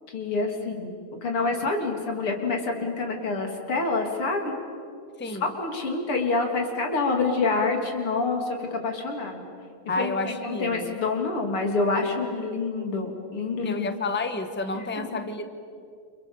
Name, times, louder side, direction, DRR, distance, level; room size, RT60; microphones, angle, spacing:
voice 1, 0.1-4.5 5.2-9.5 10.0-13.9 14.7-14.8 15.1-15.2, left 3 dB, 90° left, 3 dB, 4.1 m, -27 dB
voice 2, 9.9-10.9 13.6-15.4, left 3 dB, 5° left, 8 dB, 1.2 m, -30 dB
29.0 x 28.0 x 7.2 m, 2.4 s
omnidirectional pair, 2.3 m